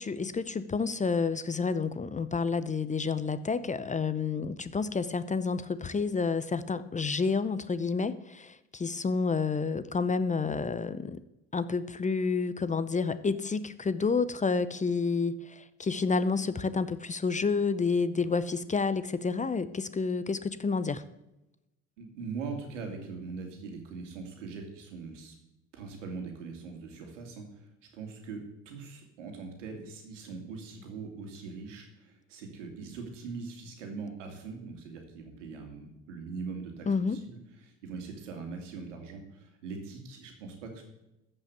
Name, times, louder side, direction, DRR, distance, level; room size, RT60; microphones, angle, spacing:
voice 1, 0.0-11.2 11.5-21.0 36.9-37.2, left 4 dB, 20° left, 14 dB, 0.7 m, -29 dB
voice 2, 22.0-25.3 25.7-27.7 27.9-40.8, right 4 dB, 80° right, 4 dB, 2.4 m, -41 dB
14.0 x 5.6 x 8.2 m, 0.92 s
hypercardioid pair, 60°, 36 cm